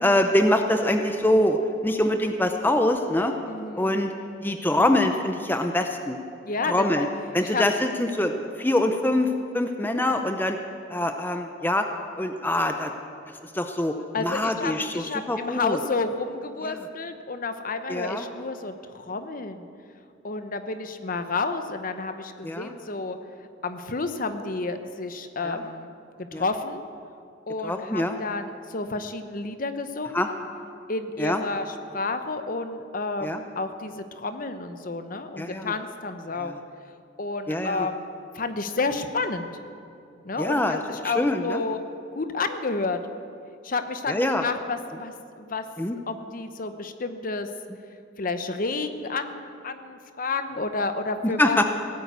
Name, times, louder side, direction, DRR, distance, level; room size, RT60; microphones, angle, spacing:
voice 1, 0.0-3.3 3.8-4.1 4.4-6.2 6.7-7.1 7.3-10.6 10.9-11.8 12.2-12.9 13.5-15.8 16.6-16.8 17.9-18.2 22.4-22.7 25.4-25.6 26.3-26.4 27.6-28.2 30.1-30.3 31.2-31.4 33.2-33.4 35.4-35.7 36.4-36.6 37.5-37.9 40.4-40.8 41.0-41.6 44.1-44.4 45.8-46.0 51.4-51.6, left 1 dB, 10° left, 5 dB, 0.6 m, -24 dB
voice 2, 3.5-4.0 6.4-7.1 7.4-7.6 14.1-19.7 20.2-23.2 23.6-25.9 26.2-26.8 27.5-30.2 30.9-36.5 37.2-38.1 38.3-39.5 40.2-41.8 42.1-43.0 43.6-45.6 46.1-47.5 48.2-51.6, left 3 dB, 45° left, 9 dB, 0.9 m, -30 dB
17.0 x 9.1 x 8.2 m, 2.5 s
head